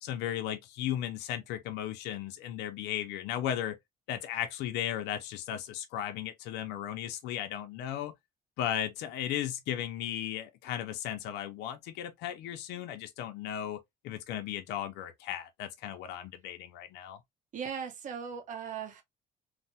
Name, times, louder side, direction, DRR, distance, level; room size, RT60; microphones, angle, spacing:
voice 1, 0.0-3.8 4.1-8.1 8.6-17.2, left 11 dB, 90° left, 0.5 m, -36 dB
voice 2, 17.5-19.0, right 7 dB, 50° right, 0.8 m, -38 dB
3.2 x 2.0 x 2.6 m
cardioid pair, 110°, 17 cm